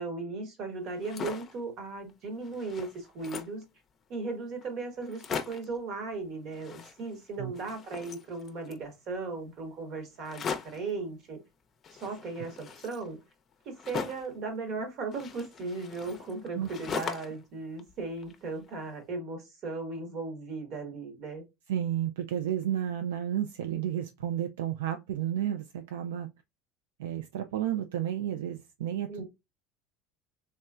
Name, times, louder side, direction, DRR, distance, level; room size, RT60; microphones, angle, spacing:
voice 1, 0.0-3.6 4.1-11.4 11.9-13.2 13.6-21.4 29.1-29.2, right 3 dB, 55° right, 1.3 m, -37 dB
sound 1, 0.9-1.6 2.1-2.2 2.4-3.6 4.3-4.4 4.6-4.7 5.0-5.8 6.5-7.3 7.5-8.9 10.2-10.9 11.8-14.4 15.1-17.5 17.8-18.7, left 6 dB, 40° left, 0.5 m, -40 dB
voice 2, 21.7-26.3 27.0-29.2, right 10 dB, 85° right, 0.3 m, -32 dB
3.1 x 3.0 x 2.3 m
hypercardioid pair, 80°, 0 cm